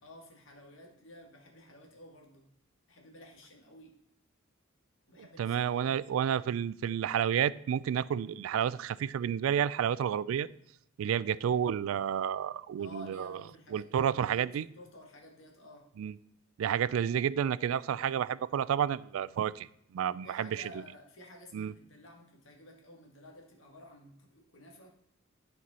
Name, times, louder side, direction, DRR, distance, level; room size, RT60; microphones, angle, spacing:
voice 1, 0.0-2.5 2.9-4.0 5.1-6.0 12.8-15.9 20.2-24.9, left 1 dB, 70° left, 1 dB, 1.7 m, -52 dB
voice 2, 5.4-10.5 11.0-13.4 13.7-14.6 16.0-16.1 16.6-19.7 19.9-20.6 21.5-21.7, right 9 dB, 80° right, 18 dB, 0.3 m, -30 dB
10.0 x 4.6 x 4.1 m, 0.75 s
head